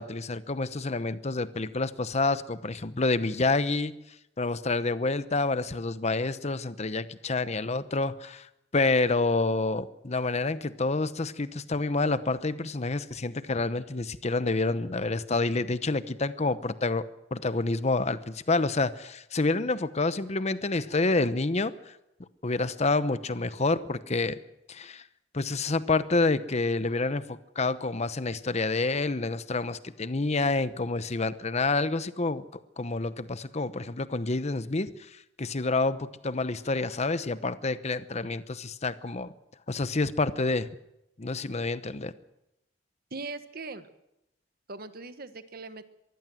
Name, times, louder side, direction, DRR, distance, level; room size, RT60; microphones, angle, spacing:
voice 1, 0.0-3.9 4.4-8.5 8.7-21.9 22.4-24.4 24.7-25.0 25.3-32.4 32.8-39.3 39.7-40.7 41.2-42.1, left 3 dB, 35° left, 14 dB, 0.9 m, -28 dB
voice 2, 43.1-43.9 44.7-45.8, right 3 dB, 50° right, 11 dB, 1.3 m, -40 dB
23.0 x 15.0 x 7.7 m, 0.87 s
head